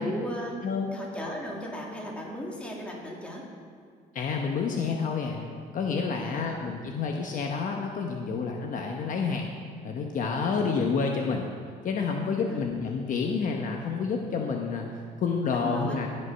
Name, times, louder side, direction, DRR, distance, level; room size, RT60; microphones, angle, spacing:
voice 1, 0.0-0.5 0.9-3.5 6.1-6.6 12.4-12.6 15.5-16.1, equal, 5° left, -3 dB, 2.6 m, -36 dB
voice 2, 4.1-9.5 9.8-11.4 11.8-14.9 15.2-16.1, left 5 dB, 50° left, 2 dB, 1.0 m, -29 dB
16.0 x 5.4 x 5.7 m, 2.1 s
cardioid pair, 110°, 17 cm